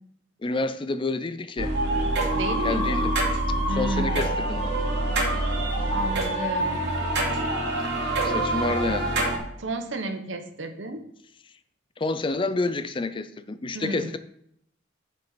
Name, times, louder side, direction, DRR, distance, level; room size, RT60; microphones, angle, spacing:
voice 1, 0.4-1.7 2.6-3.1 3.7-4.8 5.8-5.9 8.2-9.1 12.0-14.2, left 3 dB, 25° left, 0.4 m, -29 dB
sound 1, 1.6-9.4, right 1 dB, 65° right, 2.6 m, -25 dB
voice 2, 2.3-3.0 3.7-4.3 5.9-6.8 7.8-8.0 9.6-11.0 13.7-14.1, right 2 dB, 85° right, 1.1 m, -32 dB
7.3 x 5.4 x 5.7 m
head